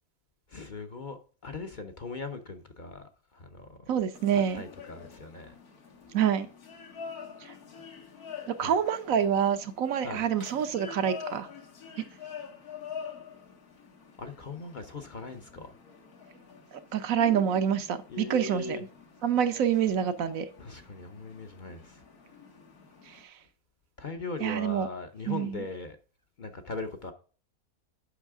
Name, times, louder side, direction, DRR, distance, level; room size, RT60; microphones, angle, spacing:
voice 1, 0.5-3.9 4.3-5.5 8.6-8.8 10.0-10.3 14.2-15.8 18.1-18.8 20.6-22.0 24.0-26.0 26.4-27.1, left 3 dB, 45° left, 0.7 m, -40 dB
voice 2, 3.9-4.6 6.1-6.5 8.5-11.5 16.9-18.8 19.2-20.5 24.4-24.9 25.3-25.6, right 8 dB, 70° right, 1.2 m, -27 dB
sound 1, 4.1-23.2, left 6 dB, 85° left, 1.9 m, -47 dB
8.2 x 5.7 x 3.5 m
omnidirectional pair, 1.6 m